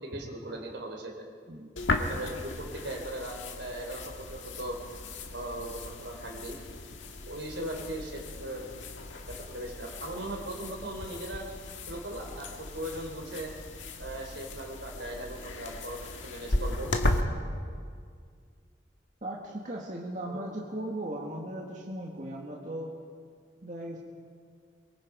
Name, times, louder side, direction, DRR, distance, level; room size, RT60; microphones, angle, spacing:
voice 1, 0.0-1.3 2.0-4.8 5.3-6.6 7.3-8.7 9.4-11.5 11.9-13.5 14.0-16.9 20.3-20.4, right 1 dB, 75° right, 1 dB, 3.7 m, -38 dB
sound 1, 1.8-17.2, left 2 dB, 85° left, 1.7 m, -36 dB
voice 2, 19.2-22.9 23.6-24.0, right 1 dB, 40° right, -2 dB, 1.8 m, -37 dB
23.5 x 23.0 x 5.1 m, 2.1 s
head